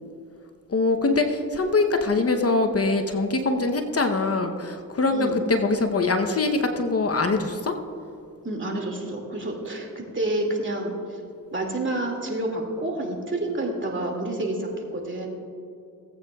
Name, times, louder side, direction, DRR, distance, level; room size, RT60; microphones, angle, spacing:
voice 1, 0.7-7.7, left 3 dB, 45° left, 6 dB, 0.8 m, -23 dB
voice 2, 8.4-9.9 10.1-10.9 11.5-15.3, right 1 dB, 35° right, 1 dB, 2.2 m, -28 dB
17.5 x 8.5 x 2.3 m, 2.5 s
cardioid pair, 55°, 35 cm